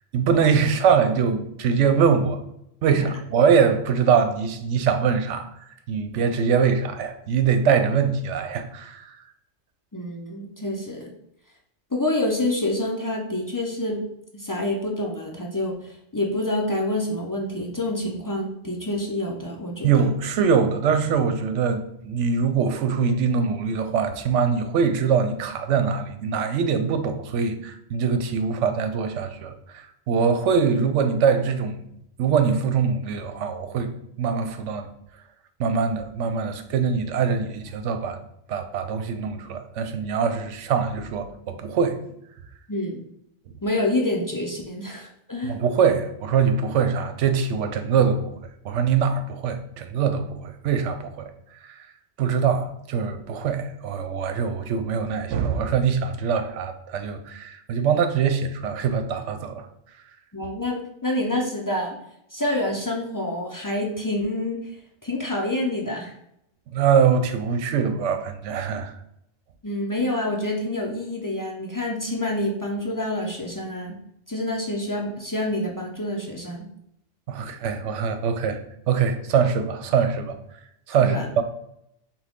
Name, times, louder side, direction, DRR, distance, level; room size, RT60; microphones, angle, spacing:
voice 1, 0.1-2.4 2.8-5.5 5.9-9.2 19.8-31.8 32.2-33.9 34.2-34.9 35.6-38.2 38.5-42.0 45.4-48.3 48.6-51.3 52.2-59.7 66.7-68.9 77.3-78.6 78.9-80.4 80.9-81.4, right 6 dB, 80° right, 0.9 m, -23 dB
voice 2, 9.9-11.1 11.9-14.0 14.3-20.1 42.7-43.0 43.6-45.6 60.3-62.0 62.3-64.6 65.0-66.1 69.6-74.0 74.3-76.6 81.0-81.3, left 1 dB, 30° left, 0.3 m, -27 dB
6.0 x 2.3 x 3.5 m
omnidirectional pair, 1.2 m